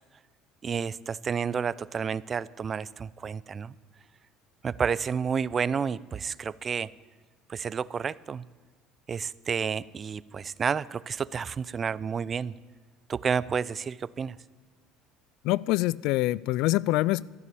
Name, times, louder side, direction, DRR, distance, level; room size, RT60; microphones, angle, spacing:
voice 1, 0.6-3.7 4.6-6.9 7.5-8.5 9.1-12.5 13.1-14.4, right 6 dB, 35° right, 20 dB, 0.5 m, -30 dB
voice 2, 15.4-17.2, left 18 dB, 70° left, 22 dB, 0.3 m, -25 dB
13.0 x 11.0 x 8.4 m, 1.4 s
hypercardioid pair, 70°, 0 cm